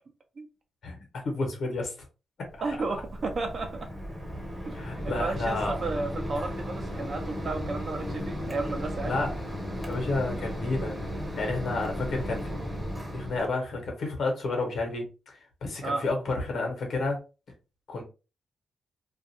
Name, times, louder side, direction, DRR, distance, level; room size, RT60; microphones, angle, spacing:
voice 1, 0.8-1.9 4.7-5.8 9.0-9.3 9.9-11.0 11.3-12.4 13.1-17.2 17.9-18.0, left 3 dB, 70° left, 1.0 m, -30 dB
Mechanisms, 2.5-13.5, equal, 5° right, 0.8 m, -35 dB
voice 2, 2.6-3.9 4.7-4.8 5.0-9.2 15.8-16.0, right 3 dB, 50° right, 0.6 m, -33 dB
2.4 x 2.3 x 2.7 m
wide cardioid pair, 125°, 0 cm